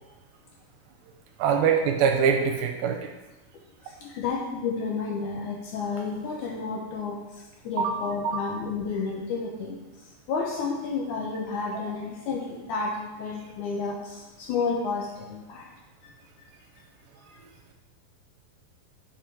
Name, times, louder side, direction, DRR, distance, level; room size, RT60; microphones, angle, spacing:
voice 1, 1.4-3.1 7.8-8.0 8.2-8.4, right 6 dB, 85° right, 3 dB, 2.6 m, -23 dB
voice 2, 3.8-15.7 17.3-17.4, left 4 dB, 75° left, 0 dB, 1.9 m, -31 dB
7.4 x 5.3 x 6.1 m, 1.1 s
omnidirectional pair, 4.3 m